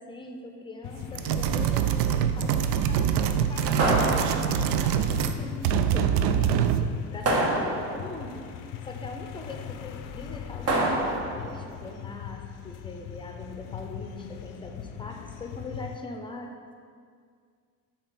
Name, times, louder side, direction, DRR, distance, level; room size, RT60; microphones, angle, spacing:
voice 1, 0.0-6.4 6.8-16.7, left 2 dB, 15° left, 3 dB, 0.6 m, -42 dB
sound 1, 0.8-16.0, left 10 dB, 65° left, 0.5 m, -40 dB
sound 2, 1.1-5.4 5.6-6.9, right 9 dB, 70° right, 0.5 m, -24 dB
sound 3, 3.8-4.9 7.2-8.2 10.7-11.5, right 1 dB, 45° right, 1.1 m, -26 dB
7.1 x 3.0 x 5.7 m, 2.1 s
cardioid pair, 115°, 36 cm